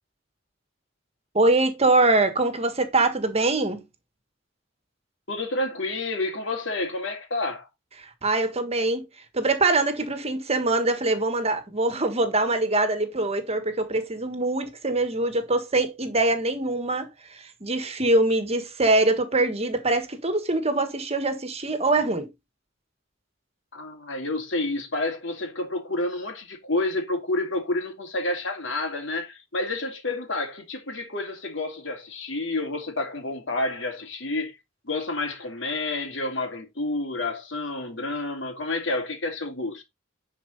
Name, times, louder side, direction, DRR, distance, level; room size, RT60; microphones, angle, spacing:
voice 1, 1.3-3.8 8.2-9.0 9.3-17.1 17.6-22.3, right 2 dB, 35° right, 1.5 m, -23 dB
voice 2, 5.3-7.7 23.7-34.6 34.8-39.8, left 2 dB, 75° left, 2.8 m, -29 dB
10.5 x 4.7 x 4.0 m
head